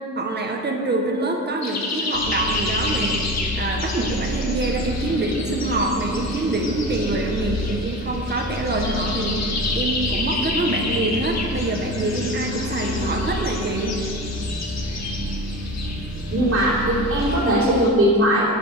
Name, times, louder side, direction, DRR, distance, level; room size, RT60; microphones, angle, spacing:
voice 1, 0.1-3.2 3.5-9.4 9.7-14.0, right 2 dB, 35° right, 2 dB, 1.4 m, -25 dB
sound 1, 1.6-17.9, left 3 dB, 65° left, 2.2 m, -31 dB
sound 2, 2.1-17.3, equal, 75° right, 2.9 m, -29 dB
voice 2, 16.3-18.5, equal, 55° right, -8 dB, 2.9 m, -19 dB
9.8 x 9.3 x 6.7 m, 2.5 s
cardioid pair, 105°, 29 cm